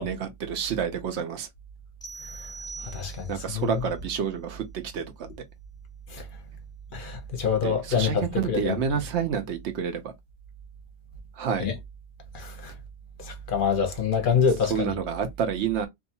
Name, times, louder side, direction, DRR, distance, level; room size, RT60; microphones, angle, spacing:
voice 1, 0.0-1.5 3.3-5.3 7.6-10.1 11.4-11.7 14.7-15.9, right 7 dB, 75° right, 0.9 m, -29 dB
sound 1, 2.0-3.5, right 4 dB, 5° left, 0.7 m, -42 dB
voice 2, 2.8-3.8 6.1-6.3 6.9-8.8 11.6-11.8 12.3-12.7 13.2-14.9, left 6 dB, 55° left, 0.8 m, -26 dB
2.6 x 2.3 x 2.7 m
omnidirectional pair, 1.2 m